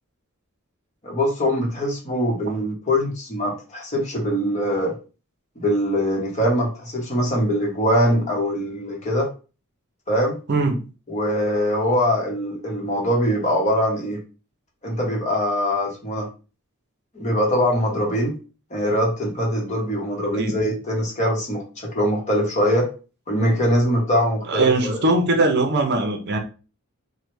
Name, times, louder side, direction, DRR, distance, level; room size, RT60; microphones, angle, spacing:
voice 1, 1.0-5.0 5.6-9.3 10.1-10.4 11.1-14.2 14.8-16.3 17.1-18.4 18.7-22.9 23.3-25.0, equal, 35° left, -1 dB, 0.9 m, -22 dB
voice 2, 10.5-10.8 20.3-20.6 24.5-26.4, right 2 dB, 55° right, 4 dB, 0.6 m, -20 dB
3.1 x 2.1 x 3.0 m, 0.34 s
head